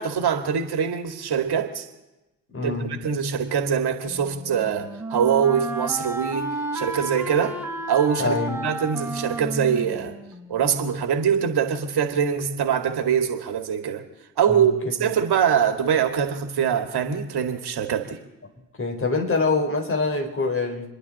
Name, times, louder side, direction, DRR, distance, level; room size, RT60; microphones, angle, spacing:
voice 1, 0.0-1.8 2.6-7.6 7.9-10.2 10.5-14.0 14.4-18.2, right 8 dB, 50° right, 2.2 m, -23 dB
voice 2, 2.5-2.9 8.2-8.6 14.5-14.7 18.8-20.9, left 3 dB, 25° left, 4.0 m, -24 dB
Wind instrument woodwind instrument, 4.1-10.9, right 2 dB, 5° right, 3.0 m, -32 dB
29.5 x 11.0 x 4.2 m
hypercardioid pair, 55°, 49 cm